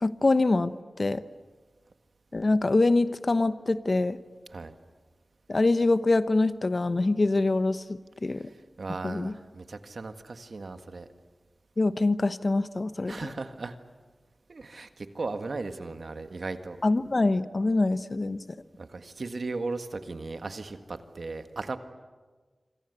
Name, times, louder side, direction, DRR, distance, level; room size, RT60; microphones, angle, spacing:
voice 1, 0.0-1.2 2.3-4.2 5.5-8.5 9.0-9.3 11.8-13.3 16.8-18.4, left 2 dB, 50° left, 13 dB, 1.0 m, -25 dB
voice 2, 8.4-11.1 13.1-13.8 14.5-16.8 18.8-21.8, right 3 dB, 70° right, 8 dB, 1.7 m, -37 dB
26.0 x 26.0 x 8.2 m, 1.4 s
wide cardioid pair, 60°, 0 cm